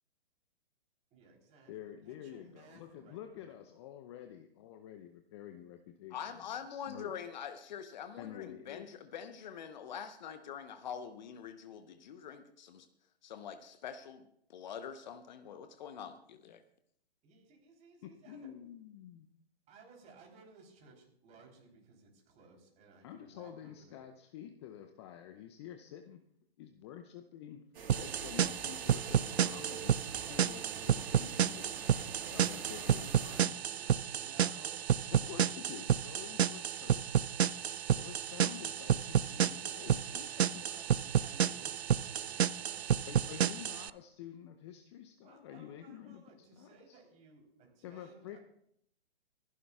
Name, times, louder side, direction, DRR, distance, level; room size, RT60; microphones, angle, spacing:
voice 1, 1.1-3.7 17.2-18.5 19.7-24.0 31.9-36.4 39.7-43.5 45.2-48.4, right 3 dB, 20° right, 0 dB, 3.5 m, -59 dB
voice 2, 1.7-6.1 6.7-7.1 8.2-8.9 18.0-19.3 23.0-26.2 26.6-27.7 28.0-33.5 35.1-37.3 38.0-40.8 43.1-47.0 47.8-48.4, left 10 dB, 25° left, 7 dB, 0.6 m, -49 dB
voice 3, 6.1-12.9 13.2-16.6, left 8 dB, 45° left, 9 dB, 0.9 m, -45 dB
sound 1, 27.7-33.4, right 5 dB, 55° right, 5.2 m, -47 dB
sound 2, 27.9-43.9, right 9 dB, 80° right, 0.5 m, -31 dB
25.5 x 11.0 x 2.3 m, 0.73 s
figure-of-eight pair, 125°, 31 cm